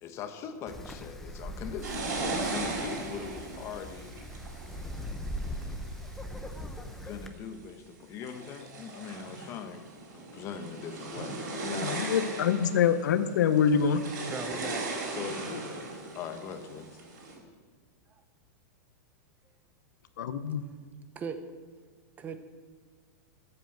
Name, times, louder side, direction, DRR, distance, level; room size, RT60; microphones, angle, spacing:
voice 1, 0.0-4.1 6.9-12.0 14.5-14.8 15.1-15.6 16.1-17.0, left 6 dB, 30° left, 8 dB, 1.2 m, -41 dB
Wind, 0.7-7.3, equal, 5° left, 0.8 m, -40 dB
sound 1, 1.8-6.6 7.2-7.7 8.1-17.4, right 3 dB, 75° right, 4.7 m, -38 dB
voice 2, 11.7-14.0 15.5-15.6 20.2-20.6, left 7 dB, 75° left, 11 dB, 1.0 m, -25 dB
voice 3, 14.3-14.8 21.1-21.4 22.2-22.4, right 5 dB, 15° right, 9 dB, 1.0 m, -37 dB
13.5 x 7.9 x 7.3 m, 1.5 s
supercardioid pair, 160°, 10 cm